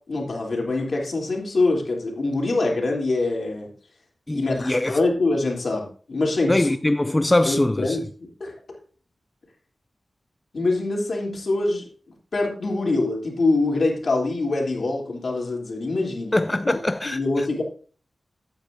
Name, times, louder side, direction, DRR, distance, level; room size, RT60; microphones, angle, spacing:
voice 1, 0.1-3.7 4.3-6.7 7.4-8.5 10.5-11.8 12.3-16.4 17.0-17.6, left 2 dB, 60° left, 3.2 m, -24 dB
voice 2, 4.3-5.0 6.5-8.0 16.3-17.5, left 1 dB, 20° left, 0.3 m, -22 dB
14.5 x 8.7 x 2.6 m
wide cardioid pair, 105°, 0 cm